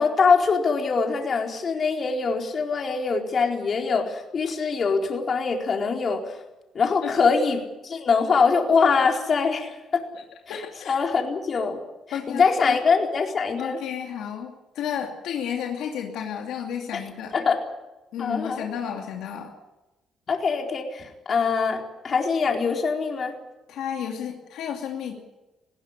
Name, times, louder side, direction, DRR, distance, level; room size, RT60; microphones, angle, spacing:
voice 1, 0.0-6.4 6.7-10.0 10.5-10.6 10.9-11.8 12.1-13.8 17.3-17.6 18.2-18.7 20.3-23.3, left 5 dB, 45° left, 2 dB, 4.2 m, -23 dB
voice 2, 10.5-11.0 12.1-12.8 13.6-17.3 18.1-19.5 23.7-25.2, left 8 dB, 85° left, 2 dB, 2.7 m, -32 dB
20.5 x 16.5 x 9.9 m, 1.1 s
cardioid pair, 90°, 0 cm